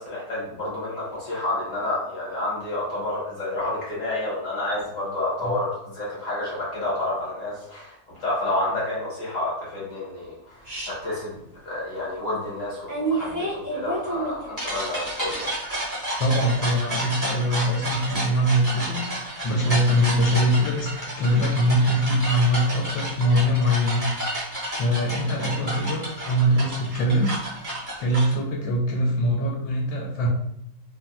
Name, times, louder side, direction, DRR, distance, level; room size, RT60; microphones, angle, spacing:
voice 1, 0.0-11.3 11.6-15.5 16.0-16.1, left 2 dB, 50° left, -7 dB, 1.1 m, -29 dB
sound 1, 10.6-10.9 12.9-28.3, right 1 dB, 30° right, 0.3 m, -31 dB
voice 2, 16.2-19.0 19.4-20.9 21.2-24.1 24.7-27.3 28.0-30.3, equal, 75° left, -2 dB, 1.3 m, -22 dB
3.0 x 2.5 x 2.3 m, 0.77 s
omnidirectional pair, 2.2 m